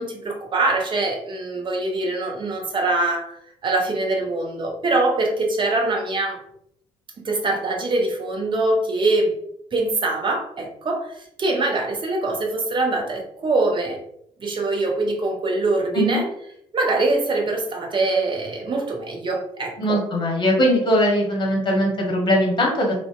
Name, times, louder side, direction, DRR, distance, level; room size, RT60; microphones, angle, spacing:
voice 1, 0.0-3.4 3.6-6.4 7.2-9.3 9.7-14.0 14.4-16.2 16.7-20.0, right 2 dB, 30° right, 1 dB, 0.6 m, -23 dB
voice 2, 19.8-22.9, equal, 30° left, -1 dB, 0.9 m, -20 dB
2.5 x 2.1 x 2.4 m, 0.72 s
figure-of-eight pair, 50°, 15 cm